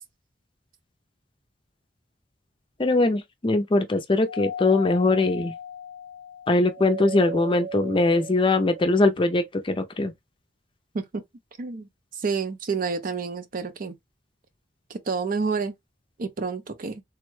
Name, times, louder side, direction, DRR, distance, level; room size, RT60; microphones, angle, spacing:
voice 1, 2.8-5.5 6.5-10.1, left 2 dB, 30° left, 0.5 m, -21 dB
Doorbell, 4.3-9.1, left 1 dB, 70° right, 1.1 m, -36 dB
voice 2, 11.6-11.9 12.2-14.0 14.9-15.7 16.2-17.0, right 5 dB, 50° right, 0.5 m, -29 dB
3.4 x 2.1 x 3.1 m
head